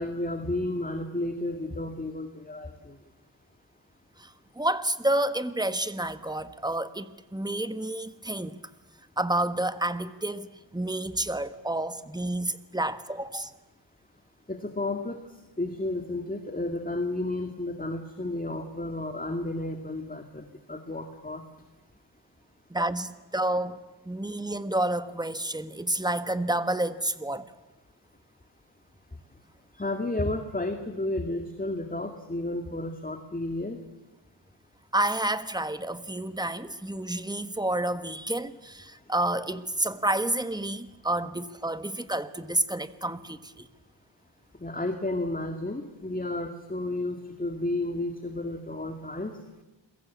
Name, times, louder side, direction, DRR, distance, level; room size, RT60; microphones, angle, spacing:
voice 1, 0.0-3.0 14.5-15.2 15.6-21.4 29.8-33.8 44.6-49.4, left 2 dB, 20° left, 2.2 m, -32 dB
voice 2, 4.2-8.6 9.2-13.5 22.7-23.8 24.0-27.5 34.9-43.7, right 1 dB, 10° right, 1.4 m, -29 dB
29.0 x 22.0 x 8.5 m
wide cardioid pair, 90°, 45 cm